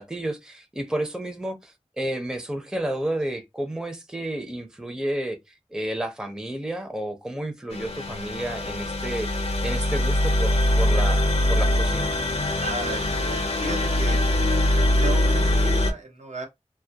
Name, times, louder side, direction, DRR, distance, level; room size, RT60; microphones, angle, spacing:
voice 1, 0.0-12.1, right 1 dB, 5° right, 0.5 m, -31 dB
sound 1, 7.7-15.9, left 1 dB, 55° left, 0.5 m, -23 dB
voice 2, 12.6-14.2 15.0-16.5, right 3 dB, 80° right, 0.8 m, -35 dB
2.2 x 2.0 x 2.7 m
wide cardioid pair, 40°, 12 cm